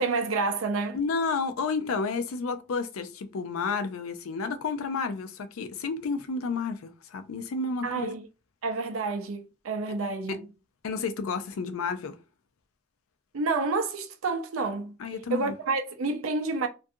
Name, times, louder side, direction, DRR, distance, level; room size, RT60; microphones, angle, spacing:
voice 1, 0.0-1.0 7.8-8.3 8.6-10.4 13.3-14.9 15.3-16.7, right 3 dB, 80° right, 0.5 m, -29 dB
voice 2, 0.9-8.1 10.3-10.4 10.8-12.2 15.0-15.5, left 4 dB, 85° left, 0.4 m, -31 dB
2.5 x 2.3 x 2.6 m
head